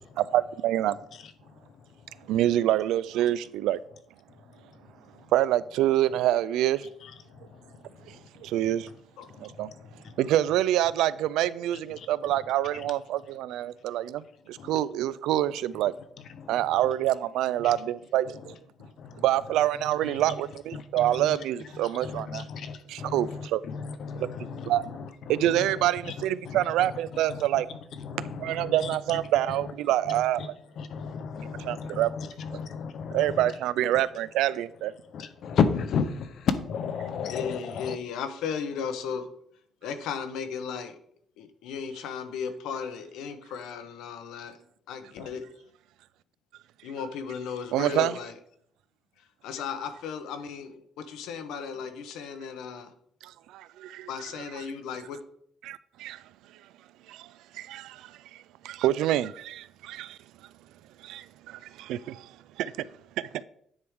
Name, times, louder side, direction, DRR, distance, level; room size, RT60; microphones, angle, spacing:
voice 1, 0.2-1.0 2.3-3.8 5.3-6.9 8.1-8.2 8.4-8.9 9.4-9.7 10.2-15.9 16.5-18.5 19.2-22.5 22.9-23.6 24.2-24.3 24.7-24.8 25.3-27.7 28.4-30.5 31.6-32.1 32.5-32.6 33.1-34.9 47.7-48.2 53.2-54.1 54.5-54.6 55.6-56.2 57.1-60.2 61.0-62.3 62.6-62.9 63.2-63.3, right 13 dB, 90° right, 0.3 m, -26 dB
voice 2, 7.0-7.6 9.3-10.2 12.0-12.1 14.6-14.8 16.4-16.7 17.6-17.7 18.8-19.2 20.0-20.2 20.7-21.4 22.0-25.7 26.0-26.1 26.4-27.0 27.3-27.6 28.0-29.0 30.1-30.5 30.8-33.5 35.1-38.0, left 6 dB, 55° left, 0.7 m, -33 dB
voice 3, 37.3-39.3 39.8-41.0 41.4-44.6 44.9-45.5 46.8-48.3 49.4-52.9 54.1-55.2, left 6 dB, 85° left, 0.9 m, -35 dB
9.5 x 3.6 x 4.7 m
cardioid pair, 145°, 0 cm